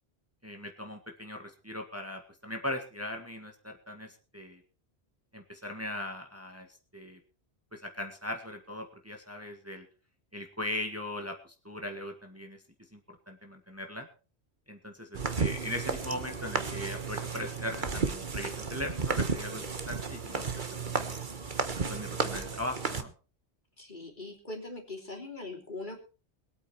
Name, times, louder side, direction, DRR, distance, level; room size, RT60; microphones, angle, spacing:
voice 1, 0.4-4.6 5.3-6.7 6.9-7.2 7.7-9.9 10.3-12.6 12.9-14.1 14.7-21.2 21.9-23.1, left 1 dB, 15° right, 3 dB, 1.8 m, -39 dB
sound 1, 15.1-23.0, right 4 dB, 50° right, 1.4 m, -33 dB
voice 2, 23.8-26.0, left 2 dB, 50° left, 1 dB, 3.5 m, -41 dB
22.0 x 8.8 x 4.4 m, 0.35 s
omnidirectional pair, 1.1 m